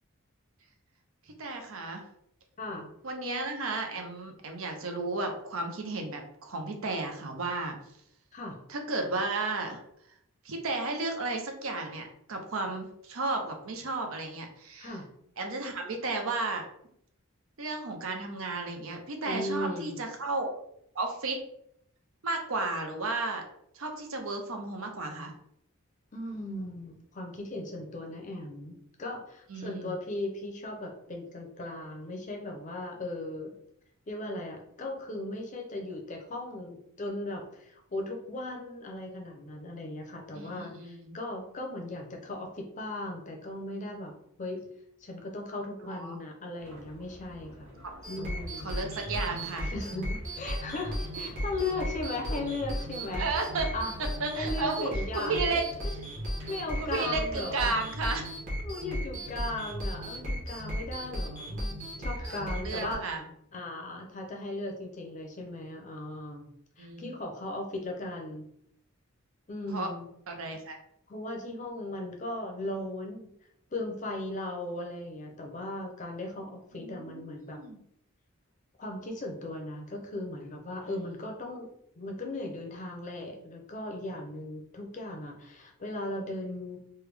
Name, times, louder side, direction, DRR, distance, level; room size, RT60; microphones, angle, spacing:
voice 1, 1.4-2.0 3.0-7.8 8.7-9.8 10.4-15.0 15.4-16.6 17.6-20.5 20.9-21.4 22.2-23.4 23.7-25.3 29.5-29.9 40.4-41.2 45.9-46.2 47.8-47.9 48.6-49.7 53.2-53.7 54.2-56.0 56.8-58.3 62.2-63.2 66.8-67.0 69.7-69.9 70.3-70.8 76.7-77.8, right 3 dB, 70° right, 4 dB, 0.6 m, -33 dB
voice 2, 2.6-2.9 8.3-8.6 14.8-15.0 19.2-20.0 26.1-33.5 34.1-44.1 44.4-44.6 45.0-47.7 48.1-48.7 49.7-53.3 53.7-53.9 54.4-55.9 56.5-57.7 58.6-63.0 63.5-66.5 66.8-68.5 69.5-70.1 71.1-73.3 73.7-77.6 78.8-81.7 82.0-86.8, left 2 dB, 35° left, 2 dB, 0.6 m, -37 dB
sound 1, 46.6-57.4, equal, 90° right, 1.1 m, -50 dB
sound 2, 48.0-62.9, equal, 35° right, 1.0 m, -36 dB
3.3 x 2.2 x 3.3 m, 0.72 s
head